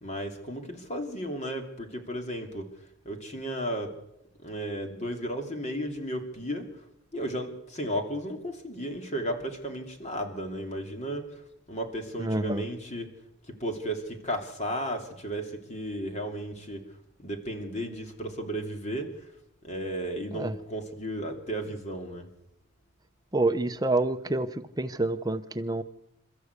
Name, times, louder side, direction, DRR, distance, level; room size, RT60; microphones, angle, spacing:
voice 1, 0.0-3.9 4.4-6.8 7.1-13.1 13.5-16.9 17.2-19.3 19.6-22.3, equal, 30° left, 4 dB, 3.0 m, -34 dB
voice 2, 12.2-12.6 20.3-20.6 23.3-25.8, right 2 dB, 15° right, 10 dB, 0.7 m, -27 dB
27.5 x 14.0 x 8.2 m, 0.85 s
head